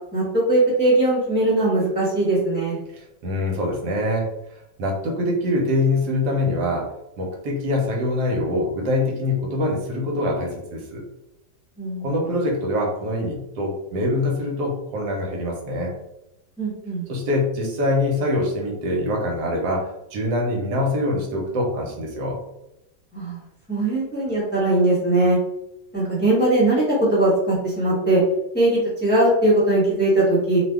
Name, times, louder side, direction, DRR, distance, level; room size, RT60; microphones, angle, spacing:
voice 1, 0.1-2.8 11.8-12.2 16.6-17.1 23.1-23.4 23.7-25.4 25.9-28.2 28.5-30.6, right 2 dB, 10° left, -7 dB, 0.8 m, -20 dB
voice 2, 2.9-4.3 4.8-6.9 7.2-11.0 12.0-15.9 17.1-22.4, left 1 dB, 80° right, 0 dB, 1.3 m, -24 dB
2.7 x 2.5 x 3.4 m, 0.88 s
omnidirectional pair, 1.8 m